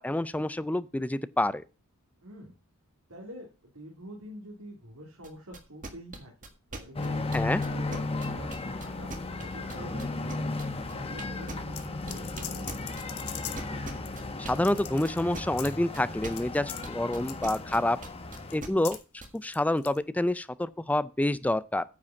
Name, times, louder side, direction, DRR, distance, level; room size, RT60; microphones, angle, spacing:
voice 1, 0.0-1.6 7.3-7.6 14.4-18.0 18.5-19.0 19.3-21.8, left 1 dB, 5° left, 0.4 m, -28 dB
voice 2, 2.2-2.5 3.1-7.3 7.6-10.6 10.9-12.7, equal, 75° right, 2.6 m, -46 dB
sound 1, 5.2-19.3, right 2 dB, 35° right, 1.7 m, -41 dB
sound 2, 6.9-18.6, left 3 dB, 25° left, 0.9 m, -35 dB
sound 3, 11.7-13.7 14.0-14.1 14.5-15.2 15.5-15.7 16.3-16.4 16.7-16.8 17.2-17.6 18.4-19.0 19.3-20.0, left 11 dB, 85° left, 1.4 m, -41 dB
9.5 x 5.1 x 7.1 m
head